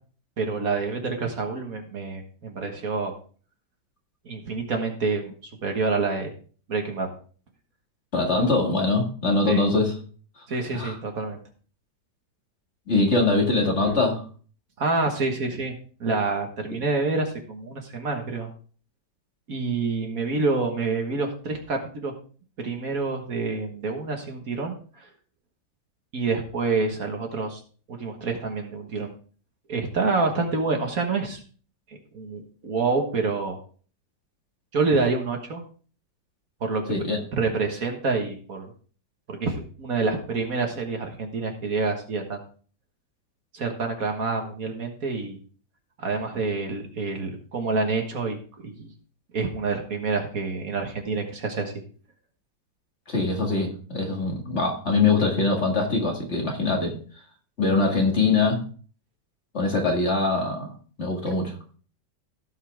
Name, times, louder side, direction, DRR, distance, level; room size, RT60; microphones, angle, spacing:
voice 1, 0.4-3.1 4.3-5.3 5.6-6.3 6.7-7.1 9.5-9.6 10.5-11.4 14.8-15.7 16.0-18.5 19.5-22.1 22.6-25.1 26.1-27.6 27.9-29.1 29.7-31.4 32.1-33.6 34.7-35.6 36.6-38.7 39.3-42.4 43.5-45.4 46.0-48.4 48.6-48.9 49.3-51.7, right 4 dB, 55° right, 3 dB, 1.9 m, -27 dB
voice 2, 8.1-9.9 10.7-10.9 12.9-14.2 36.9-37.2 53.1-57.0 57.6-58.6 59.5-60.7 61.0-61.5, left 3 dB, 40° left, 1 dB, 2.2 m, -23 dB
16.5 x 5.7 x 3.4 m, 0.42 s
omnidirectional pair, 1.8 m